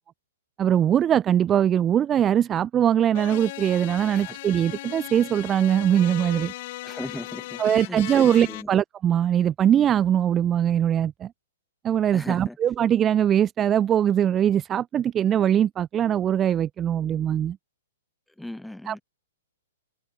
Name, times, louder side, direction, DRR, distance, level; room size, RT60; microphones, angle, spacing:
voice 1, 0.6-6.5 7.6-11.3 11.8-17.6 18.9-19.0, right 10 dB, 20° right, 0.4 m, -21 dB
sound 1, 3.1-8.6, left 19 dB, 50° left, 4.2 m, -37 dB
voice 2, 6.8-7.6 7.9-8.7 12.1-12.6 18.4-19.0, left 1 dB, 5° left, 2.3 m, -37 dB
hypercardioid pair, 130°, 0 cm